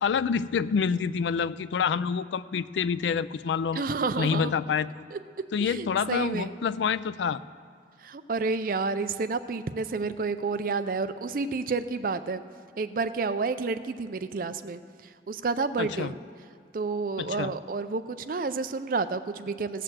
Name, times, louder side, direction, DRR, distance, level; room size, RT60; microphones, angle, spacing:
voice 1, 0.0-3.8 4.2-5.1 5.5-7.4 15.8-16.1 17.2-17.5, left 6 dB, 85° left, 16 dB, 0.3 m, -27 dB
voice 2, 3.7-4.5 5.1-5.2 5.6-6.5 8.0-12.4 12.8-14.8 15.3-16.1 16.7-19.8, right 4 dB, 50° right, 12 dB, 0.4 m, -30 dB
17.0 x 6.7 x 7.5 m, 2.1 s
head